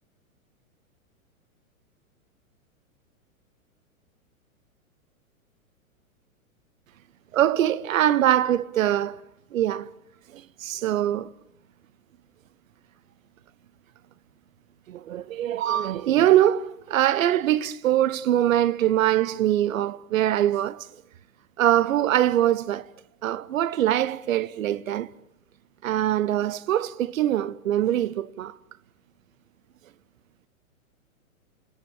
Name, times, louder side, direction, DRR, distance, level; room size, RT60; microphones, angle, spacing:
voice 1, 7.3-9.2 9.5-9.9 10.3-11.3 14.9-20.9 21.6-22.8 23.2-25.1 25.8-28.5, right 12 dB, 65° right, 1.2 m, -23 dB
29.0 x 20.0 x 7.3 m
hypercardioid pair, 115°, 43 cm